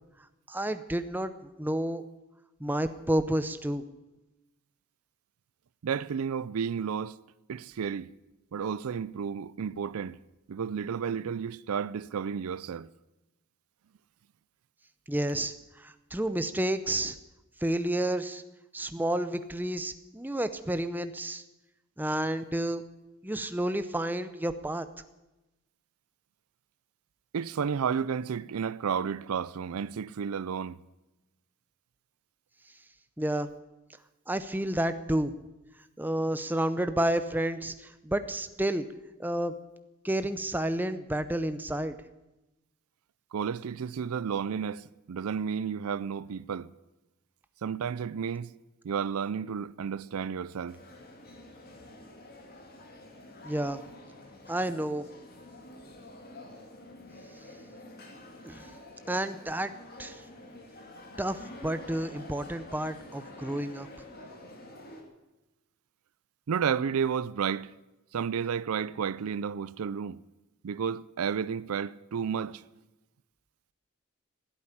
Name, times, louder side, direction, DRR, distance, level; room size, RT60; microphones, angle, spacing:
voice 1, 0.5-1.3 1.6-2.0 2.6-3.8 15.1-17.2 17.6-18.4 18.7-21.4 22.0-22.8 23.2-24.9 33.2-33.5 34.3-35.3 36.0-38.9 39.2-39.5 40.0-42.0 53.4-53.8 54.5-55.0 58.4-58.7 59.1-59.7 60.0-60.2 61.2-63.9, right 1 dB, 10° right, 0.6 m, -30 dB
voice 2, 5.8-7.2 7.5-8.1 8.5-10.2 10.5-12.9 27.3-30.8 43.3-46.7 47.6-48.5 48.8-50.8 66.5-67.7 68.1-70.2 70.6-72.6, right 7 dB, 80° right, 0.4 m, -32 dB
sound 1, 50.7-65.0, left 1 dB, 45° left, 2.5 m, -48 dB
16.0 x 8.6 x 9.8 m
head